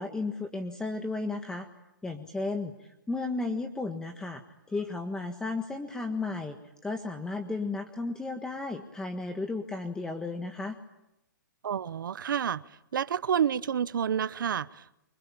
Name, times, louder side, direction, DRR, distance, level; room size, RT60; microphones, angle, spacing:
voice 1, 0.0-1.7 2.0-4.4 4.7-6.6 6.8-10.8, left 3 dB, 5° left, 5 dB, 1.6 m, -34 dB
voice 2, 11.6-12.6 12.9-15.0, right 8 dB, 75° right, 16 dB, 0.9 m, -29 dB
27.5 x 24.5 x 8.8 m, 0.88 s
hypercardioid pair, 145°, 11 cm